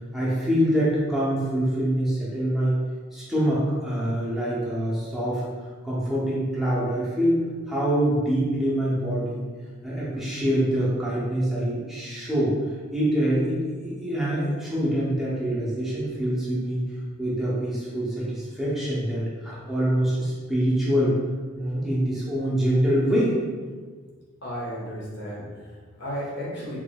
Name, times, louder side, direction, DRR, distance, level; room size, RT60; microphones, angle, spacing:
voice 1, 0.1-2.8 3.1-7.4 7.7-9.5 9.8-12.5 12.9-16.8 17.2-21.2 21.5-23.4, equal, ahead, -8 dB, 0.6 m, -25 dB
voice 2, 24.4-26.8, equal, 55° left, -6 dB, 1.1 m, -34 dB
3.7 x 3.5 x 2.2 m, 1.5 s
head